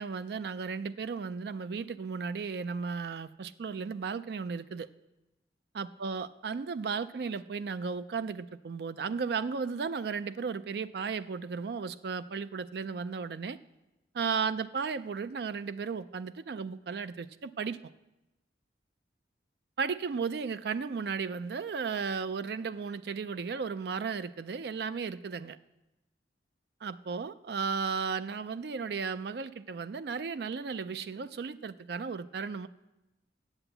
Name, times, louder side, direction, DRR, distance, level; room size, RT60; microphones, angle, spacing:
voice 1, 0.0-4.9 5.7-13.6 14.1-17.8 19.8-25.6 26.8-32.7, right 5 dB, 60° right, 14 dB, 0.4 m, -35 dB
8.0 x 7.8 x 8.0 m, 1.0 s
head